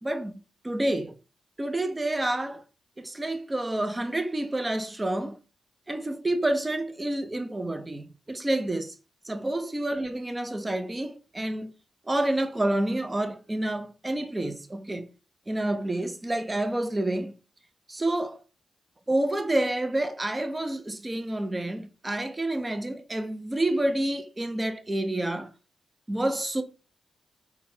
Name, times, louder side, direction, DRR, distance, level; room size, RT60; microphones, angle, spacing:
voice 1, 0.0-0.3 0.6-1.1 1.6-2.6 3.0-5.4 5.9-9.0 9.2-11.7 12.0-15.1 15.5-17.3 17.9-18.4 19.1-25.5 26.1-26.6, right 1 dB, 25° right, 0.6 m, -28 dB
3.8 x 2.2 x 2.7 m
supercardioid pair, 50°, 0 cm